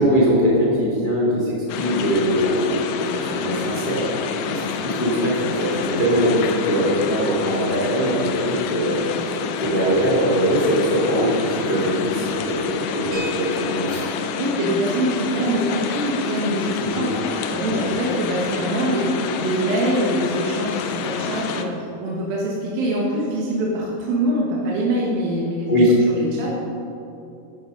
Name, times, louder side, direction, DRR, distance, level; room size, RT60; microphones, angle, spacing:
voice 1, 0.0-4.1 4.5-14.0 16.8-17.0 17.7-17.8 20.3-20.4 24.6-24.7 25.7-25.9, equal, 35° left, -6 dB, 0.8 m, -22 dB
sound 1, 1.7-21.6, left 6 dB, 90° left, 2.1 m, -28 dB
sound 2, 13.1-21.6, left 2 dB, 80° right, 4.4 m, -41 dB
voice 2, 14.4-25.8 26.1-26.5, right 1 dB, 65° right, -4 dB, 2.7 m, -24 dB
12.0 x 9.4 x 5.4 m, 2.8 s
omnidirectional pair, 5.4 m